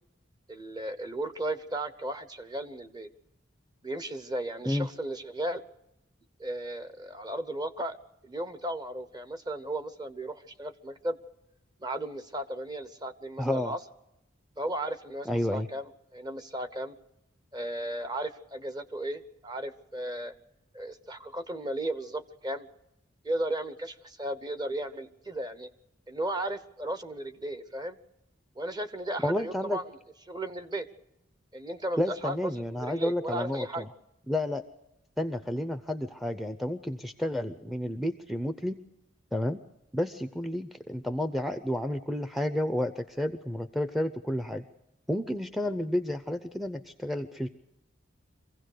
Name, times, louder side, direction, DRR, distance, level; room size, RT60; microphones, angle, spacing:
voice 1, 0.5-3.1 3.8-5.6 6.4-8.0 8.2-11.2 11.8-13.8 14.6-17.0 17.5-20.3 20.7-22.7 23.2-25.7 26.1-28.0 28.6-30.0 30.3-30.9 31.5-33.9, right 1 dB, 20° right, 11 dB, 1.0 m, -35 dB
voice 2, 13.4-13.7 15.3-15.7 29.2-29.8 32.0-33.9 34.3-34.6 35.2-38.8 39.3-39.6 39.9-44.6 45.1-47.5, left 1 dB, ahead, 8 dB, 0.6 m, -31 dB
24.5 x 16.0 x 6.6 m, 0.90 s
head